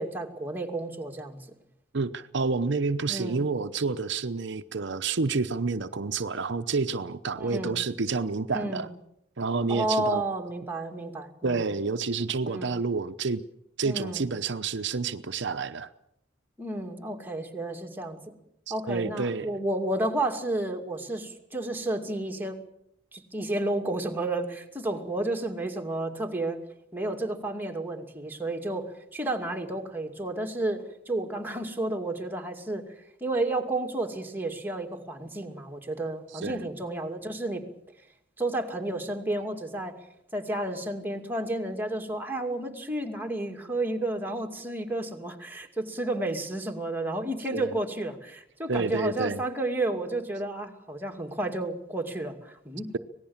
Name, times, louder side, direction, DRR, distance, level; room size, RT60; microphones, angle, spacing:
voice 1, 0.0-1.5 3.1-3.4 7.4-7.8 8.5-8.9 9.7-11.6 12.5-12.8 13.8-14.2 16.6-18.2 18.7-22.6 23.1-26.6 26.9-32.9 33.2-37.6 38.4-40.0 40.3-53.0, right 2 dB, 10° right, 3 dB, 2.5 m, -31 dB
voice 2, 1.9-8.9 9.4-10.2 11.4-13.4 13.8-15.9 18.7-19.5 36.4-36.6 47.5-47.7 48.7-49.4, right 4 dB, 65° right, 10 dB, 0.8 m, -29 dB
25.5 x 19.0 x 7.3 m, 0.77 s
head